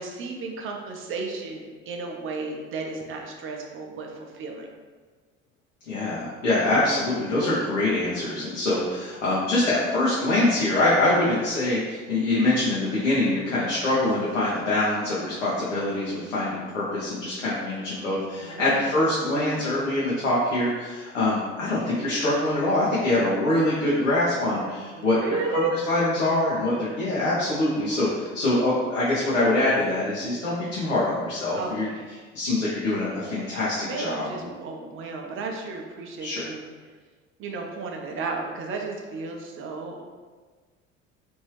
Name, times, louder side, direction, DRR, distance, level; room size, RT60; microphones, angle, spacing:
voice 1, 0.0-4.7 18.4-18.9 24.9-25.7 31.6-32.1 33.5-36.6 37.4-40.0, right 4 dB, 35° right, 2 dB, 0.6 m, -33 dB
voice 2, 5.9-31.9 32.3-34.3 36.2-36.5, left 2 dB, 80° left, -8 dB, 0.7 m, -24 dB
3.1 x 2.6 x 3.1 m, 1.4 s
figure-of-eight pair, 60°, 38 cm